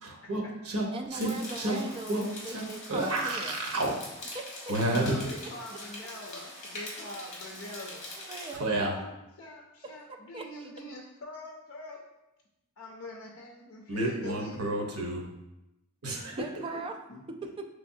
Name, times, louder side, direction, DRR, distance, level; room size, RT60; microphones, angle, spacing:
voice 1, 0.3-1.8 2.1-3.9 4.7-5.3 8.6-8.9 13.9-15.3 16.0-16.4, right 1 dB, 90° right, 0 dB, 0.9 m, -30 dB
voice 2, 0.9-3.6 4.3-4.7 5.7-6.1 8.2-8.7 10.3-10.7 16.3-17.0 17.4-17.7, right 2 dB, 25° right, 4 dB, 0.4 m, -40 dB
sound 1, 1.1-8.5, left 1 dB, 35° left, 1.4 m, -43 dB
voice 3, 4.9-8.1 8.7-9.1 9.4-12.1 12.8-14.8 17.1-17.2, left 2 dB, 60° left, 0 dB, 0.5 m, -44 dB
5.7 x 3.4 x 2.6 m, 0.93 s
head